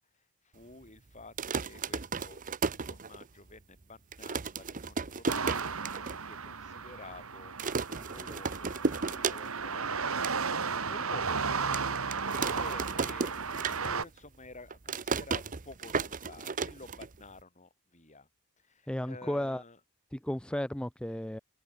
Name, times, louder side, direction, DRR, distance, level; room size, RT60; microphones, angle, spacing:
voice 1, 0.0-2.4 2.7-18.3 18.6-19.8, left 2 dB, 30° left, 6.9 m, -51 dB
sound 1, 1.2-3.5 3.8-3.9 4.1-6.2 6.5-6.6 6.8-7.2 7.6-9.7 10.0-10.4 10.9-11.0 11.7-14.2 14.5-17.4, right 4 dB, 35° right, 0.8 m, -34 dB
sound 2, 5.3-14.0, right 5 dB, 65° right, 1.7 m, -34 dB
voice 2, 18.9-19.6 20.1-21.4, left 1 dB, 5° left, 0.5 m, -34 dB
head